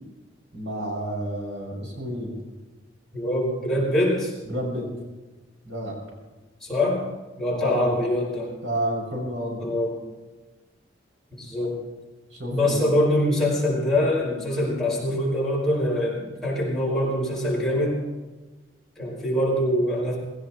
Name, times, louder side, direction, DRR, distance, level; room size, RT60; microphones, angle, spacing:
voice 1, 0.5-2.3 4.4-4.9 5.6-6.0 7.5-7.9 8.6-9.6 12.3-12.9, equal, 80° right, -3 dB, 6.9 m, -30 dB
voice 2, 3.1-4.3 6.6-7.0 7.4-8.5 9.6-10.0 11.3-11.8 12.5-18.0 19.0-20.2, left 1 dB, ahead, -6 dB, 5.6 m, -24 dB
20.5 x 17.5 x 3.2 m, 1.2 s
head